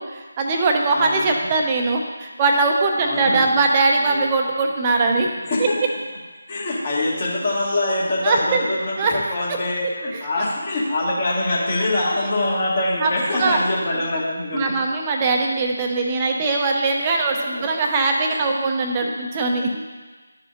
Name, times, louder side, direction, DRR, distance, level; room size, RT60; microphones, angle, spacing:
voice 1, 0.0-5.3 8.2-8.6 9.0-9.2 13.0-13.1 13.4-13.6 14.1-14.2 14.5-19.7, right 3 dB, 20° right, 2 dB, 0.7 m, -21 dB
voice 2, 0.9-1.5 3.0-3.6 4.0-4.3 5.4-6.0 6.5-14.7 17.3-17.6 18.3-18.6 19.0-19.1 19.7-19.8, left 2 dB, 35° left, -5 dB, 2.0 m, -24 dB
12.0 x 4.9 x 2.6 m, 1.3 s
figure-of-eight pair, 155°, 0 cm